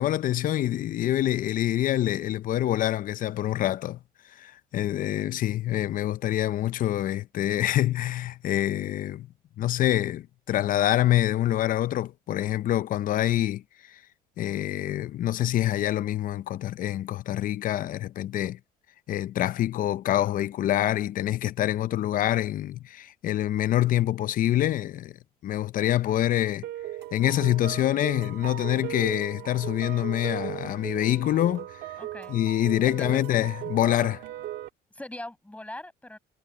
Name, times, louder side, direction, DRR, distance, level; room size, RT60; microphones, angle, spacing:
voice 1, 0.0-4.0 4.4-9.3 9.6-13.6 13.9-14.0 14.4-18.6 19.1-25.2 25.4-26.6 27.1-31.8 32.3-34.2, left 13 dB, 55° left, 0.6 m, -26 dB
sound 1, 26.6-34.7, right 13 dB, 80° right, 1.8 m, -37 dB
voice 2, 32.0-32.4 32.8-33.2 34.9-36.2, left 1 dB, 10° left, 7.5 m, -41 dB
cardioid pair, 110°, 17 cm